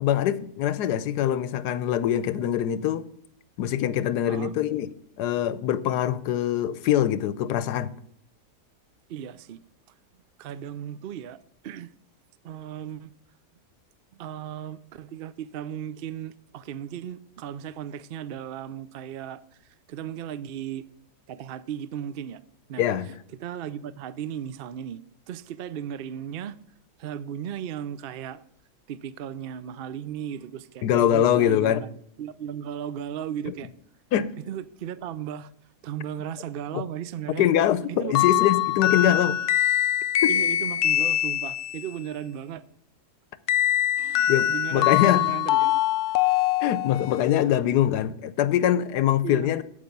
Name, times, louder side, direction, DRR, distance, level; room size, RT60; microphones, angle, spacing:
voice 1, 0.0-3.1 3.6-4.9 5.2-7.9 22.8-23.1 30.8-31.8 34.1-34.3 36.7-36.8 37.4-39.4 40.2-40.3 44.3-45.2 46.6-49.6, left 11 dB, 85° left, 1.2 m, -23 dB
voice 2, 9.1-9.6 10.4-11.9 12.4-13.1 14.1-19.4 19.9-20.8 21.3-22.4 22.7-22.9 23.4-26.5 27.0-28.4 28.9-33.7 34.4-35.5 35.8-37.5 37.9-38.5 39.0-39.3 40.3-42.6 44.0-45.8 49.2-49.5, right 9 dB, 85° right, 0.5 m, -36 dB
sound 1, 38.1-41.9 43.5-47.2, left 12 dB, 70° left, 0.7 m, -23 dB
8.9 x 8.4 x 5.3 m
omnidirectional pair, 1.7 m